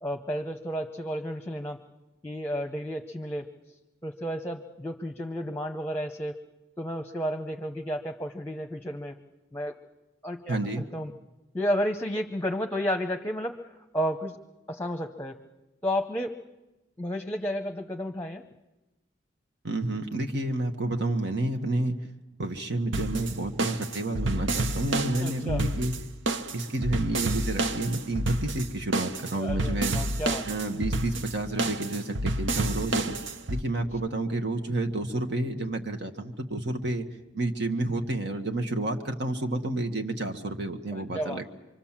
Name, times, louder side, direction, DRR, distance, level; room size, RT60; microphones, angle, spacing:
voice 1, 0.0-1.8 2.2-3.5 4.0-6.4 6.8-9.2 9.5-9.7 10.2-11.1 11.5-14.4 14.7-15.4 15.8-16.3 17.0-18.4 25.2-25.6 29.3-30.5 40.9-41.4, equal, 10° left, 6 dB, 0.9 m, -32 dB
voice 2, 10.5-10.8 19.6-22.0 22.4-25.9 26.5-29.9 30.4-33.2 33.5-37.1 37.3-41.5, right 2 dB, 65° right, 4 dB, 1.5 m, -30 dB
sound 1, 22.9-33.6, right 2 dB, 80° right, 1.1 m, -29 dB
25.5 x 25.0 x 7.4 m, 1.1 s
head